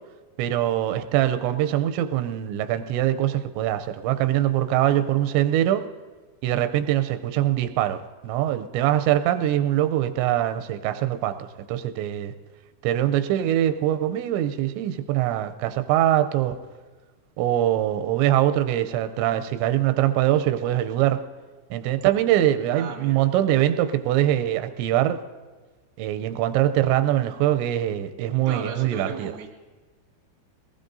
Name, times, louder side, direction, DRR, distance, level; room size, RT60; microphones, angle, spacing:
voice 1, 0.4-5.8 6.4-11.3 11.7-12.3 12.8-16.6 17.4-21.2 21.7-25.2 26.0-29.3, right 12 dB, 85° right, 9 dB, 2.8 m, -23 dB
voice 2, 22.7-23.2 28.4-29.5, right 5 dB, 50° right, 0 dB, 1.3 m, -36 dB
22.0 x 19.0 x 2.6 m, 1.3 s
omnidirectional pair, 5.1 m